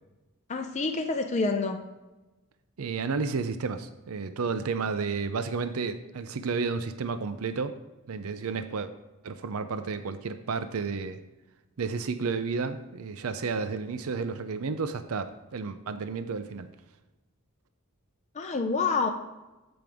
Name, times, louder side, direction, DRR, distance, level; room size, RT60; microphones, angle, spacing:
voice 1, 0.5-1.8 18.3-19.1, left 4 dB, 30° left, 3 dB, 0.6 m, -27 dB
voice 2, 2.8-7.7 8.1-8.9 9.2-11.2 11.8-16.7, right 4 dB, 75° right, 10 dB, 0.5 m, -31 dB
13.5 x 5.2 x 3.6 m, 1.1 s
head